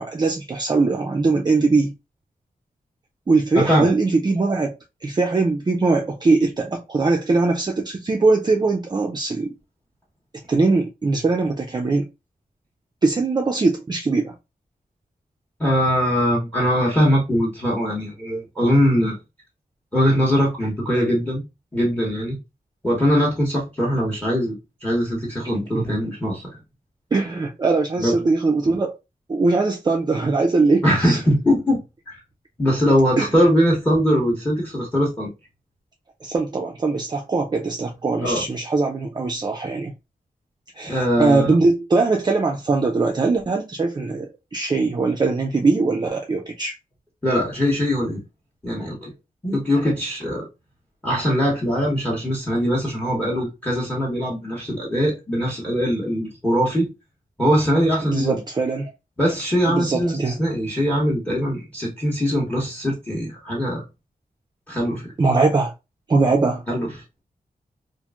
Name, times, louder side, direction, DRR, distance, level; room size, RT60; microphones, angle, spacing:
voice 1, 0.0-1.9 3.3-4.7 5.0-9.5 10.5-12.1 13.0-14.3 25.4-26.0 27.1-28.9 29.3-31.2 33.2-33.3 36.2-39.9 40.8-46.7 58.0-58.9 59.7-60.4 65.2-65.7 66.1-66.6, right 3 dB, 30° right, 0.4 m, -21 dB
voice 2, 3.5-3.9 15.6-19.2 19.9-21.4 21.7-22.4 22.8-24.5 24.8-26.4 28.0-28.1 30.8-32.2 32.6-35.3 38.2-38.4 40.8-41.5 47.2-48.2 48.6-49.1 49.4-50.5 51.0-56.9 57.4-58.4 59.2-63.8 64.7-65.1 66.7-66.9, equal, 10° left, 0.9 m, -21 dB
2.9 x 2.5 x 2.3 m
wide cardioid pair, 140°, 15 cm